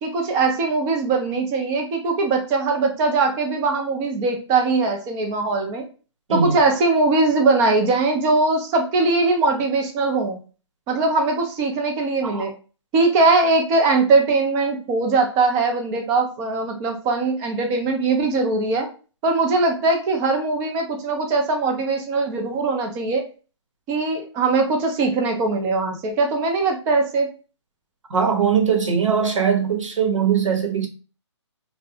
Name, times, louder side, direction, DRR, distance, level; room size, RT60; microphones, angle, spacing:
voice 1, 0.0-5.8 6.3-10.4 10.9-12.5 12.9-18.9 19.2-23.3 23.9-27.3, right 3 dB, 15° right, 0.4 m, -21 dB
voice 2, 6.3-6.6 12.2-12.4 28.1-30.9, right 6 dB, 90° right, 0.8 m, -20 dB
2.5 x 2.1 x 2.7 m
hypercardioid pair, 150°, 16 cm